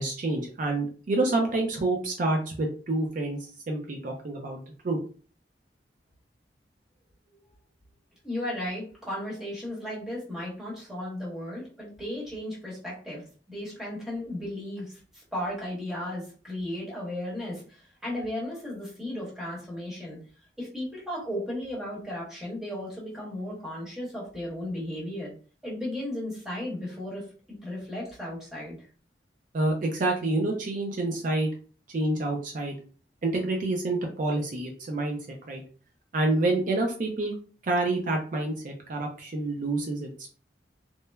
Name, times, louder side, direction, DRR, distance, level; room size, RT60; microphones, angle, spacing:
voice 1, 0.0-5.0 29.5-31.5 31.9-32.8 33.2-35.2 35.5-35.6 36.1-37.3 37.6-40.1, right 2 dB, 50° right, 1 dB, 0.4 m, -28 dB
voice 2, 8.2-20.2 20.6-25.3 25.6-28.9, left 1 dB, 5° right, -6 dB, 1.0 m, -35 dB
3.0 x 2.0 x 2.2 m, 0.40 s
head